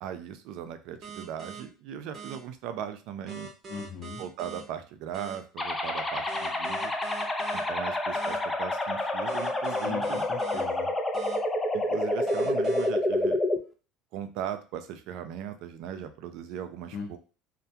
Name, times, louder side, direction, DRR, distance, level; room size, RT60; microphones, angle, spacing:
voice 1, 0.0-3.5 4.2-6.9 7.5-10.2 11.7-13.4 14.1-17.2, right 9 dB, 70° right, 9 dB, 0.3 m, -38 dB
sound 1, 1.0-1.6 2.1-2.4 3.3-4.6 5.1-5.3 6.3-7.6 8.1-8.4 9.3-10.6 11.1-11.4 12.3-12.8, right 4 dB, 40° right, 0.7 m, -42 dB
voice 2, 3.7-4.2 9.8-10.9 16.9-17.2, left 6 dB, 60° left, 0 dB, 0.6 m, -38 dB
sound 2, 5.6-13.6, left 1 dB, 15° left, 0.4 m, -28 dB
2.2 x 2.1 x 2.7 m, 0.35 s
supercardioid pair, 95°, 0 cm